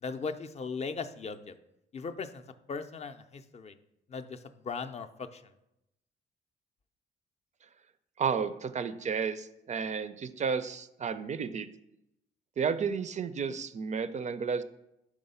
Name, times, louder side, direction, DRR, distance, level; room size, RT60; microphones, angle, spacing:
voice 1, 0.0-1.5 1.9-2.4 2.7-3.7 4.1-5.4, left 5 dB, 35° left, 8 dB, 0.4 m, -38 dB
voice 2, 8.2-11.7 12.6-14.6, right 6 dB, 35° right, 13 dB, 0.4 m, -32 dB
4.7 x 3.6 x 5.4 m, 0.85 s
cardioid pair, 90°, 20 cm